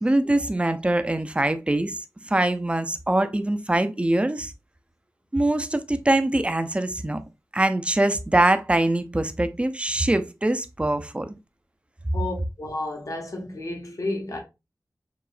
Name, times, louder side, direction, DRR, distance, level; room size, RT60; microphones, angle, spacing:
voice 1, 0.0-4.5 5.3-7.2 7.5-11.4, right 1 dB, 20° right, 0.5 m, -23 dB
voice 2, 12.1-14.4, left 2 dB, 60° left, 1.3 m, -32 dB
4.8 x 3.1 x 2.5 m
wide cardioid pair, 55°, 6 cm